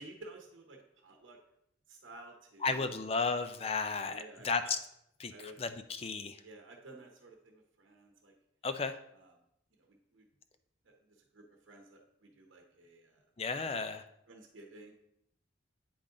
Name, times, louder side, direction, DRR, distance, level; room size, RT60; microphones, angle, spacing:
voice 1, 0.0-1.4 1.9-3.0 4.1-4.5 5.3-5.6 6.4-8.3 9.1-9.3 9.8-10.2 10.8-10.9 11.3-13.2 14.3-14.9, right 2 dB, 85° right, 2 dB, 0.9 m, -53 dB
voice 2, 2.6-4.8 5.2-5.3 5.6-6.4 8.6-9.0 13.4-14.0, left 4 dB, 30° left, 10 dB, 0.4 m, -33 dB
8.5 x 3.8 x 3.7 m, 0.76 s
head